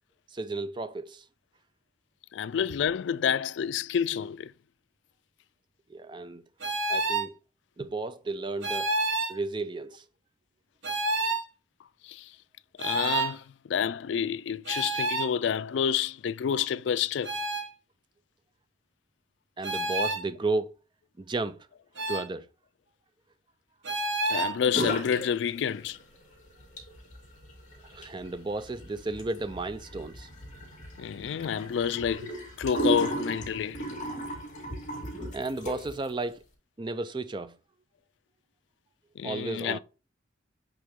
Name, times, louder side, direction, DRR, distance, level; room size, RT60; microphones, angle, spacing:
voice 1, 0.3-1.3 5.9-6.4 6.9-7.4 7.8-8.9 9.3-10.0 19.6-20.8 21.2-21.7 22.1-22.5 27.8-30.3 35.3-36.4 36.8-37.6 39.2-39.8, right 3 dB, 25° right, 0.4 m, -33 dB
voice 2, 2.3-4.5 12.0-12.3 12.8-17.4 24.3-26.0 31.0-33.8 39.2-39.8, left 8 dB, 75° left, 0.3 m, -29 dB
sound 1, 6.6-7.3 8.6-9.4 10.8-11.4 12.8-13.3 14.7-15.3 17.2-17.7 19.6-20.2 22.0-22.3 23.8-24.5, right 2 dB, 80° right, 1.2 m, -29 dB
sound 2, 24.7-25.3 25.6-26.2 26.6-36.1, right 1 dB, 40° left, 2.4 m, -35 dB
7.8 x 3.7 x 3.6 m
head